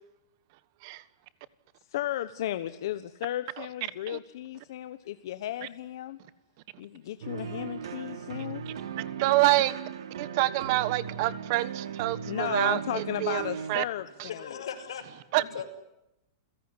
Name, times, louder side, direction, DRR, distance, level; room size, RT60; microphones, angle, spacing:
voice 1, 1.9-6.2 6.8-8.6 12.3-14.6, left 13 dB, 55° left, 12 dB, 1.2 m, -34 dB
sound 1, 7.2-13.8, right 7 dB, 80° right, 3.6 m, -38 dB
voice 2, 9.2-9.7 10.2-13.8 14.2-14.3 15.3-15.4, right 17 dB, 40° right, 17 dB, 1.3 m, -27 dB
voice 3, 14.0-15.6, left 8 dB, 85° left, 7 dB, 6.0 m, -40 dB
29.5 x 17.0 x 9.8 m, 0.88 s
supercardioid pair, 170°, 3 cm